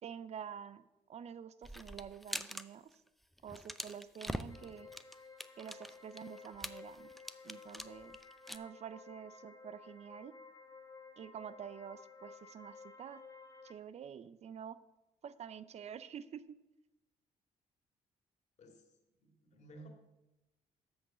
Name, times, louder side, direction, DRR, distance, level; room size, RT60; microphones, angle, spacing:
voice 1, 0.0-3.0 3.4-4.9 5.6-7.1 7.4-8.2 8.5-10.3 11.2-13.2 13.6-14.8 15.2-16.6, right 8 dB, 50° right, 15 dB, 0.6 m, -48 dB
sound 1, 1.6-2.6 2.9-3.1 3.4-8.6, equal, ahead, 0.5 m, -44 dB
sound 2, 4.5-13.7, left 4 dB, 25° left, 2.2 m, -55 dB
voice 2, 18.6-19.9, right 2 dB, 55° left, 3 dB, 2.2 m, -56 dB
8.0 x 6.2 x 6.7 m, 1.0 s
supercardioid pair, 70°, 14 cm